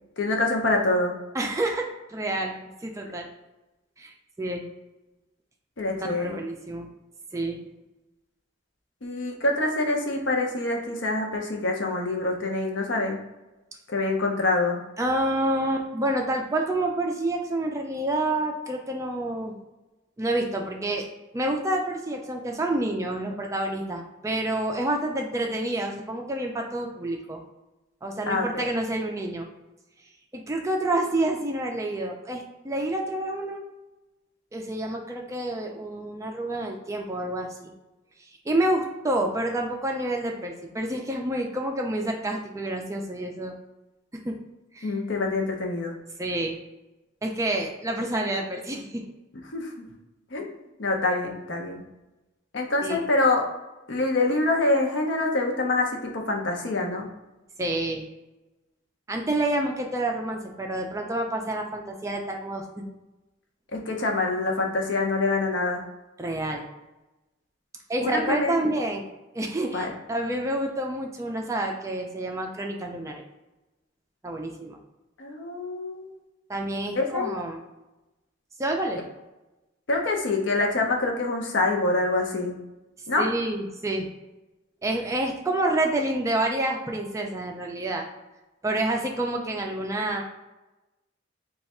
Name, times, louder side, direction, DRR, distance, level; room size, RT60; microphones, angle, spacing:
voice 1, 0.2-1.1 5.8-6.4 9.0-13.2 13.9-14.8 28.3-28.6 44.8-45.9 49.5-49.8 50.3-50.5 50.8-51.8 52.5-53.4 53.9-57.1 63.7-65.8 68.0-68.6 69.7-69.9 75.2-76.1 76.9-77.3 79.9-82.6 83.1-83.3, left 2 dB, 65° left, 2 dB, 0.7 m, -25 dB
voice 2, 1.3-3.3 4.0-4.7 6.1-6.9 7.3-7.6 15.0-19.5 20.2-21.1 21.3-27.4 28.0-29.5 30.5-33.6 34.5-37.7 38.2-43.5 44.2-44.4 44.7-44.9 46.2-46.6 47.2-49.0 52.8-53.1 57.6-58.1 59.1-62.8 66.2-66.6 67.9-69.0 69.3-73.2 74.2-74.8 76.5-77.6 78.6-79.0 83.2-84.1 84.8-88.0 88.6-90.2, right 1 dB, 15° right, 2 dB, 0.3 m, -28 dB
3.3 x 2.3 x 4.2 m, 1.0 s
head